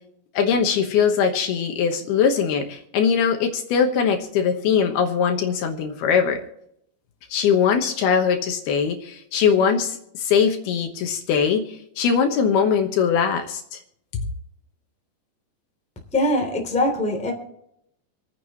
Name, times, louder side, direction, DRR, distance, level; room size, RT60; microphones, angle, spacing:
voice 1, 0.3-6.4 7.3-13.8 14.1-14.2, left 7 dB, 75° left, 4 dB, 3.0 m, -21 dB
voice 2, 16.1-17.3, left 1 dB, ahead, 2 dB, 1.9 m, -22 dB
27.5 x 9.5 x 3.1 m, 0.75 s
omnidirectional pair, 5.0 m